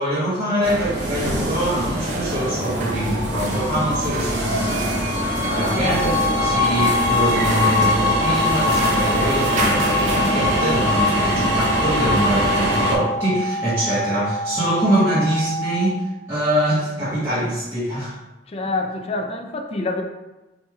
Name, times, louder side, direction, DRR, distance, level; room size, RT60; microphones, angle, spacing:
voice 1, 0.0-16.0 16.3-18.2, right 1 dB, 15° right, -13 dB, 1.1 m, -24 dB
sound 1, 0.6-13.0, left 1 dB, 85° right, 0.7 m, -22 dB
sound 2, 1.8-10.3, right 3 dB, 45° right, 0.5 m, -33 dB
voice 2, 5.4-6.0 18.5-20.0, left 3 dB, 35° left, 4 dB, 0.4 m, -26 dB
sound 3, 5.8-15.9, right 1 dB, 65° right, 1.4 m, -28 dB
4.4 x 3.0 x 2.3 m, 1.0 s
head